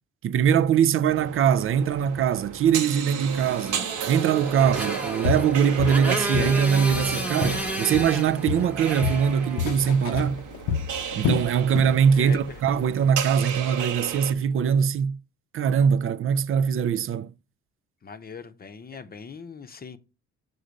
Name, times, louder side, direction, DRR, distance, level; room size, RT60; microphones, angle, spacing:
voice 1, 0.2-10.4 11.1-15.2 15.5-17.3, right 8 dB, 45° right, 0.4 m, -22 dB
sound 1, 1.1-14.3, right 8 dB, 85° right, 1.0 m, -34 dB
Motorcycle, 3.3-10.0, right 1 dB, 5° right, 1.1 m, -32 dB
Walk footsteps, 4.7-4.9 5.2-6.6 6.9-8.2 8.5-12.0 12.3-12.6 13.0-13.1, left 8 dB, 85° left, 0.7 m, -30 dB
voice 2, 12.1-12.6 18.0-20.0, left 5 dB, 30° left, 0.7 m, -41 dB
6.7 x 3.9 x 5.1 m
cardioid pair, 90°, 30 cm